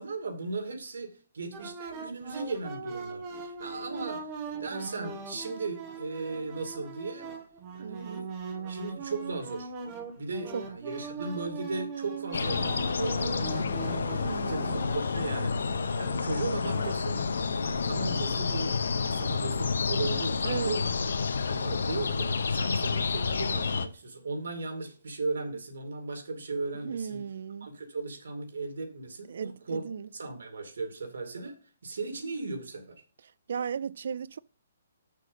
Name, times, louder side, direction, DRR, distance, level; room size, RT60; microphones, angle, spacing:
voice 1, 0.0-7.3 7.7-8.3 8.7-9.7 10.2-17.3 17.6-20.9 21.5-27.2 27.6-29.8 30.1-31.6 31.8-33.0, right 3 dB, 85° right, 2.5 m, -36 dB
sound 1, 1.5-17.8, right 5 dB, 20° right, 1.0 m, -40 dB
voice 2, 7.8-8.3 10.5-10.7 14.2-14.8 20.4-20.8 26.8-27.7 29.3-30.1 33.5-34.4, right 7 dB, 55° right, 0.3 m, -35 dB
sound 2, 12.3-23.9, left 5 dB, 90° left, 0.9 m, -29 dB
6.5 x 6.4 x 5.1 m
hypercardioid pair, 175°, 0 cm